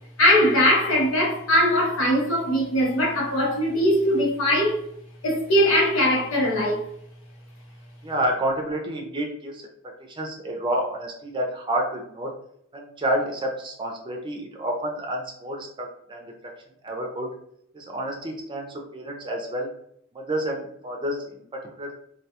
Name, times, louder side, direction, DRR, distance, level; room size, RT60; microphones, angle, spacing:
voice 1, 0.2-4.8 5.2-6.8, equal, 90° left, 0.8 m, -20 dB
voice 2, 8.0-9.7 10.1-12.3 12.7-16.3 16.8-17.3 17.7-19.7 20.1-22.0, right 1 dB, 25° right, 0.4 m, -29 dB
2.3 x 2.2 x 2.8 m
head